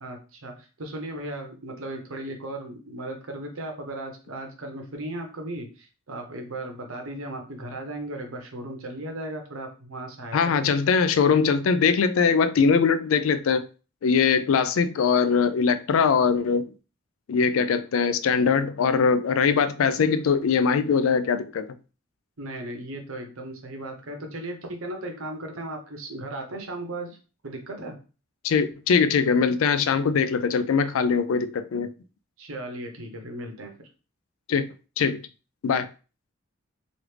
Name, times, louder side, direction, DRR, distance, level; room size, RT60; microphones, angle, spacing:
voice 1, 0.0-10.7 22.4-27.2 27.4-28.0 32.4-33.9, right 1 dB, 85° right, 0.9 m, -36 dB
voice 2, 10.3-13.7 14.0-16.7 17.3-21.7 28.4-31.9 34.5-34.7 35.0-35.2 35.6-35.9, left 5 dB, 80° left, 0.4 m, -22 dB
3.1 x 2.4 x 3.2 m
head